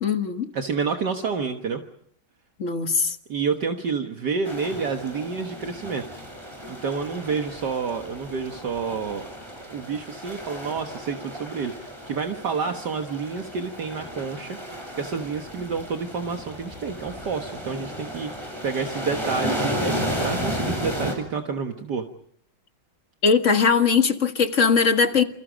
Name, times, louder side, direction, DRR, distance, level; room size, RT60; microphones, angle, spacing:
voice 1, 0.0-0.5 2.6-3.2 23.2-25.2, left 5 dB, 40° left, 1.9 m, -20 dB
voice 2, 0.5-1.8 3.3-6.0 6.7-9.3 9.5-22.1, right 5 dB, 60° right, 2.0 m, -29 dB
sound 1, 4.4-21.1, equal, 15° right, 7.2 m, -33 dB
29.0 x 28.0 x 5.2 m
omnidirectional pair, 2.1 m